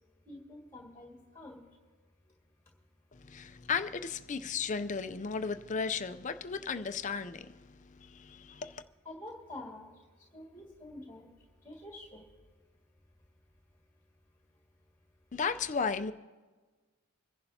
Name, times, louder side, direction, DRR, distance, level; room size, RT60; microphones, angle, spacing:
voice 1, 0.3-1.6 9.0-9.9 10.3-11.3 11.6-12.2, left 1 dB, 10° left, 2.0 m, -47 dB
voice 2, 3.2-8.8 15.3-16.1, left 5 dB, 35° left, 0.5 m, -35 dB
26.5 x 11.0 x 2.8 m
head